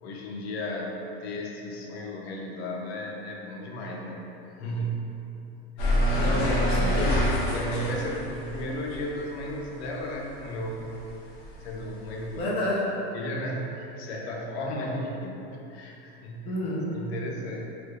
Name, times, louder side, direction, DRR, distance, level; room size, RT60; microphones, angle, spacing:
voice 1, 0.0-4.3 4.6-5.2 6.2-6.5 7.5-11.1 11.6-12.5 13.1-16.6 16.9-17.7, equal, 85° left, 0 dB, 0.6 m, -34 dB
sound 1, 5.8-10.4 10.8-12.4, equal, 55° left, 0.9 m, -27 dB
voice 2, 6.1-7.4 12.4-12.9 16.5-16.9, left 1 dB, 20° left, -5 dB, 0.3 m, -29 dB
3.3 x 2.8 x 2.3 m, 2.9 s
supercardioid pair, 155°, 31 cm